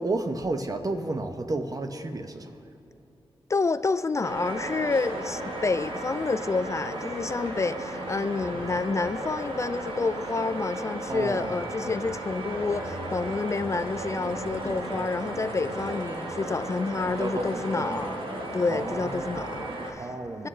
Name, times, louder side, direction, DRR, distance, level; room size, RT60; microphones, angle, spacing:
voice 1, 0.0-2.5 11.1-11.6 14.6-14.7 17.1-18.0 18.7-19.5 20.0-20.5, right 2 dB, 40° right, 7 dB, 0.9 m, -32 dB
voice 2, 3.5-18.1 18.5-20.1 20.4-20.5, left 3 dB, 35° left, 13 dB, 0.3 m, -29 dB
sound 1, 4.2-19.9, right 1 dB, 70° right, 1.4 m, -35 dB
22.0 x 7.6 x 3.3 m, 2.8 s
cardioid pair, 60°, 9 cm